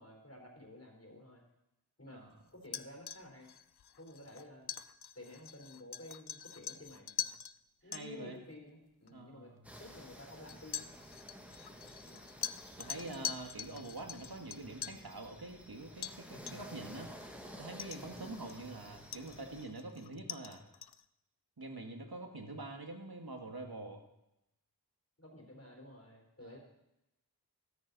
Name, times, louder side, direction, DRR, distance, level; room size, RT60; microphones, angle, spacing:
voice 1, 0.0-1.4 2.0-2.2 2.5-3.5 4.0-4.8 5.2-7.3 7.8-9.5 9.8-10.9 12.0-12.3 18.1-18.5 25.2-26.6, left 1 dB, 40° left, 1 dB, 3.9 m, -52 dB
sound 1, 2.6-7.5 7.9-8.0 9.1-9.2 10.5-15.1 16.0-16.2 16.5-16.8 17.2-17.3 17.8-18.7 19.1-21.0, left 8 dB, 75° left, 0.5 m, -44 dB
voice 2, 7.9-8.4 9.1-9.7 12.8-17.1 17.6-20.6 21.6-24.0 26.4-26.6, right 2 dB, 70° right, 3 dB, 1.8 m, -45 dB
sound 2, 9.6-19.7, equal, 5° right, 2.0 m, -52 dB
13.5 x 13.5 x 4.1 m, 0.89 s
wide cardioid pair, 45°, 39 cm